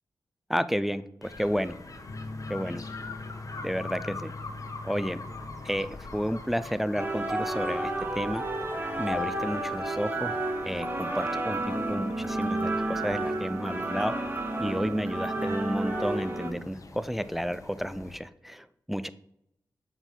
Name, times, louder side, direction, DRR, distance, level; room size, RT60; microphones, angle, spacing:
voice 1, 0.5-1.8 2.5-2.8 3.6-4.3 4.8-5.2 5.6-8.4 9.0-10.3 10.7-14.1 14.6-19.1, equal, 5° right, 14 dB, 0.4 m, -31 dB
sound 1, 1.2-18.2, left 3 dB, 45° left, 1.0 m, -45 dB
sound 2, 2.1-13.3, left 3 dB, 75° left, 1.4 m, -45 dB
sound 3, 7.0-16.5, right 2 dB, 25° right, 1.4 m, -31 dB
7.0 x 4.0 x 3.8 m, 0.76 s
cardioid pair, 50°, 8 cm